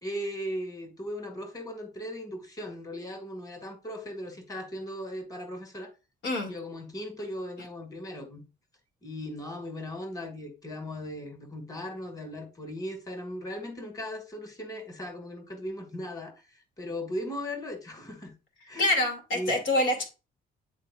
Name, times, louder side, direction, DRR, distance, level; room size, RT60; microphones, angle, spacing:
voice 1, 0.0-5.9 6.5-8.4 9.0-16.4 16.8-18.3 18.7-19.0 19.3-19.6, equal, 20° left, 1.8 m, -38 dB
voice 2, 18.8-20.0, left 1 dB, 75° left, 2.3 m, -26 dB
10.0 x 4.1 x 2.4 m
cardioid pair, 90°, 20 cm